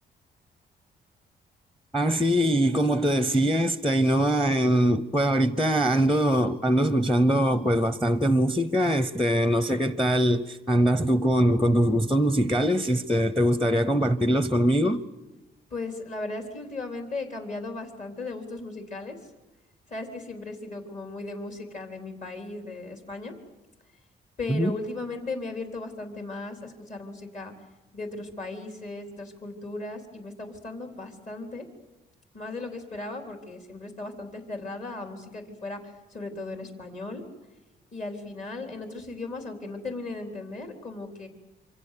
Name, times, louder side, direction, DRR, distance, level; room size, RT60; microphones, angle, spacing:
voice 1, 1.9-15.0 24.5-24.7, equal, ahead, 0.8 m, -22 dB
voice 2, 15.7-19.3 19.9-23.3 24.4-27.5 27.9-31.7 32.3-37.2 37.9-41.3, left 3 dB, 45° left, 3.9 m, -37 dB
27.0 x 25.0 x 6.8 m
cardioid pair, 120°, 18 cm